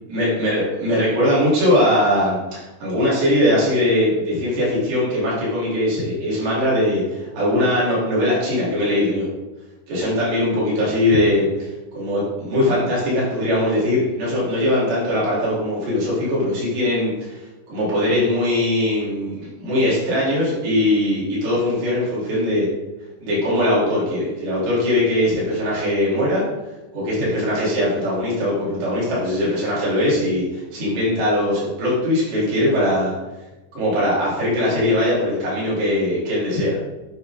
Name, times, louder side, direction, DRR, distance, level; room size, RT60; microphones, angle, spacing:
voice 1, 0.1-9.3 9.9-22.7 23.2-26.4 26.9-33.1 33.7-36.8, left 1 dB, 70° right, -7 dB, 6.3 m, -21 dB
10.5 x 8.5 x 3.7 m, 1.1 s
omnidirectional pair, 5.2 m